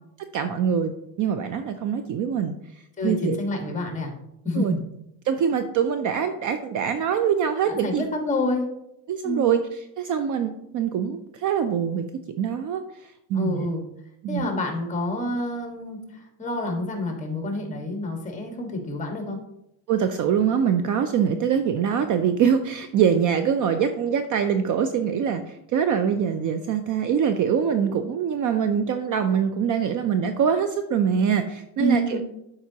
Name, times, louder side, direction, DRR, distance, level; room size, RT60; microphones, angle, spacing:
voice 1, 0.3-0.9 1.2-2.6 3.0-3.4 4.6-4.7 5.3-8.0 9.1-9.6 10.0-12.1 12.4-13.7 14.2-14.5 19.9-32.2, right 7 dB, 45° right, 9 dB, 0.4 m, -24 dB
voice 2, 3.0-4.1 4.4-4.8 7.7-8.7 9.2-9.5 13.3-13.8 14.3-19.4 31.8-32.2, left 1 dB, 15° left, 2 dB, 1.4 m, -28 dB
11.5 x 4.9 x 2.8 m, 0.83 s
cardioid pair, 150°, 46 cm